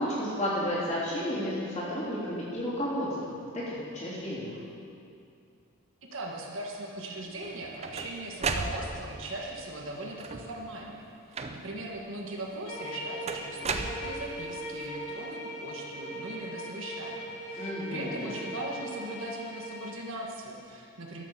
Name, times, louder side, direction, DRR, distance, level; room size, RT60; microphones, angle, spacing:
voice 1, 0.0-4.6 17.6-18.4, equal, 30° left, -8 dB, 3.3 m, -32 dB
voice 2, 6.0-11.1 11.5-21.2, right 1 dB, 60° right, -1 dB, 1.4 m, -39 dB
sound 1, 7.4-9.3 10.1-10.6 11.3-11.9 13.3-14.6, right 4 dB, 30° right, 0.5 m, -34 dB
sound 2, 12.6-20.0, equal, 50° left, 3.1 m, -40 dB
12.0 x 6.7 x 6.6 m, 2.4 s
head